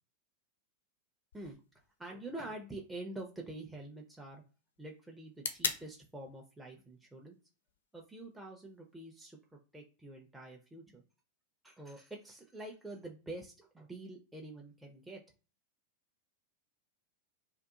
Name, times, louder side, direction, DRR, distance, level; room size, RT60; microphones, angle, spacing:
sound 1, 1.3-9.3, left 5 dB, 70° left, 0.4 m, -45 dB
voice 1, 2.0-4.4 4.8-7.4 7.9-11.0 11.6-15.2, right 2 dB, 5° right, -1 dB, 0.4 m, -46 dB
2.6 x 2.2 x 2.4 m, 0.34 s
figure-of-eight pair, 90°, 0 cm